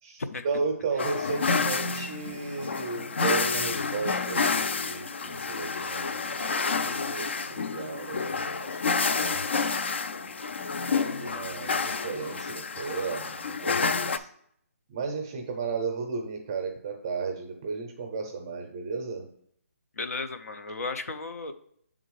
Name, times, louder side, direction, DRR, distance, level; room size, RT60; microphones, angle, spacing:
voice 1, 0.0-9.5 10.9-14.3 14.9-19.3, right 4 dB, 15° right, 3 dB, 0.6 m, -34 dB
sound 1, 1.0-14.2, left 4 dB, 50° left, 0.4 m, -29 dB
voice 2, 20.0-21.5, left 3 dB, 85° left, 7 dB, 0.7 m, -34 dB
6.7 x 3.8 x 4.6 m, 0.68 s
hypercardioid pair, 180°, 8 cm